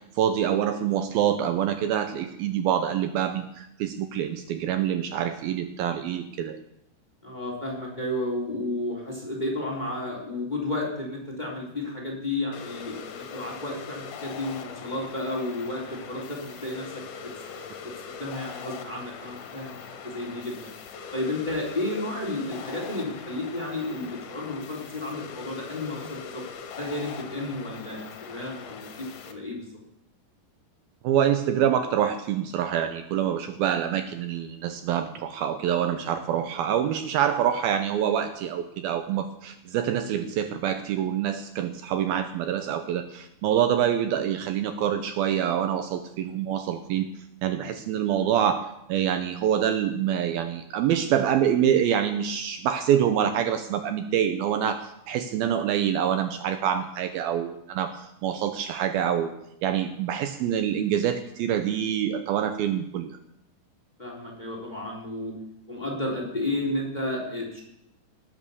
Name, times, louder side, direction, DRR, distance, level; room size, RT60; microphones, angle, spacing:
voice 1, 0.2-6.6 31.0-47.1 47.4-59.3 59.6-63.2, right 9 dB, 75° right, 8 dB, 2.5 m, -26 dB
voice 2, 7.2-20.7 21.1-26.4 26.8-29.7 47.5-47.7 64.0-65.3 65.7-67.6, left 1 dB, 10° left, 0 dB, 3.1 m, -32 dB
sound 1, 12.5-29.3, left 7 dB, 70° left, 3.1 m, -41 dB
19.0 x 9.0 x 7.0 m, 0.81 s
omnidirectional pair, 4.7 m